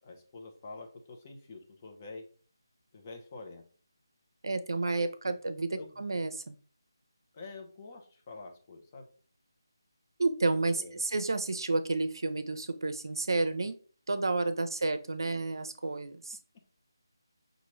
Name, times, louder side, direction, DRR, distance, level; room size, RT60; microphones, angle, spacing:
voice 1, 0.0-2.2 2.9-3.6 5.2-5.3 5.8-6.1 7.3-9.1 10.7-11.0, left 3 dB, 25° left, 2 dB, 0.8 m, -47 dB
voice 2, 4.4-6.6 10.2-13.7 14.1-16.4, right 3 dB, 65° right, 9 dB, 0.7 m, -31 dB
5.9 x 2.5 x 3.1 m, 0.42 s
figure-of-eight pair, 170°, 2 cm